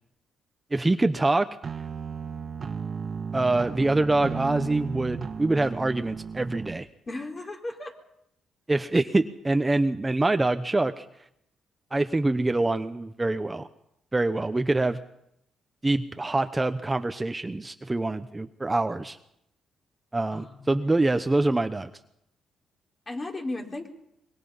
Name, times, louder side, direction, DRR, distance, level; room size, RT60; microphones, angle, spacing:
voice 1, 0.7-1.5 3.3-6.9 8.7-11.0 11.9-13.7 14.1-15.0 15.8-19.2 20.1-21.9, right 2 dB, 15° right, 9 dB, 0.9 m, -25 dB
sound 1, 1.6-6.8, right 6 dB, 40° right, 1.6 m, -35 dB
voice 2, 7.1-7.9 20.3-21.0 23.1-23.9, left 2 dB, 30° left, 2 dB, 4.1 m, -35 dB
25.0 x 22.5 x 5.6 m, 0.79 s
cardioid pair, 90°, 0 cm